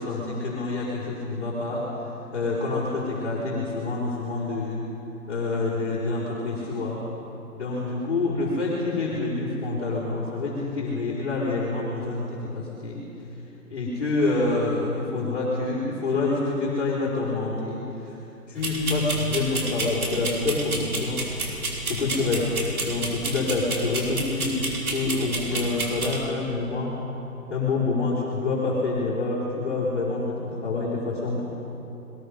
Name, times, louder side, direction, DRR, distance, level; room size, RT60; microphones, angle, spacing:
voice 1, 0.0-1.9 2.3-4.8 5.3-7.0 7.5-13.0 13.7-18.2 18.5-21.6 21.9-22.5 22.8-24.5 24.9-26.9 27.5-31.5, left 3 dB, 40° left, -7 dB, 5.5 m, -27 dB
sound 1, 18.6-26.2, right 2 dB, 70° right, 5.3 m, -31 dB
29.0 x 22.0 x 5.4 m, 2.9 s
hypercardioid pair, 175°, 45 cm